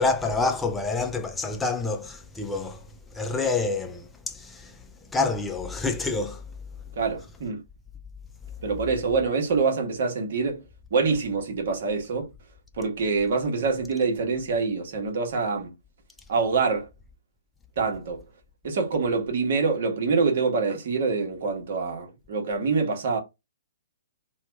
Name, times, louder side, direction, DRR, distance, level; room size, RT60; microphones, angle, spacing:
voice 1, 0.0-4.8 5.1-6.4, left 3 dB, 10° left, 0.5 m, -27 dB
voice 2, 7.0-7.6 8.6-10.6 10.9-12.3 12.8-15.7 16.3-16.9 17.8-18.2 18.6-23.2, right 4 dB, 55° right, 1.1 m, -25 dB
2.8 x 2.3 x 3.3 m
figure-of-eight pair, 125°, 0 cm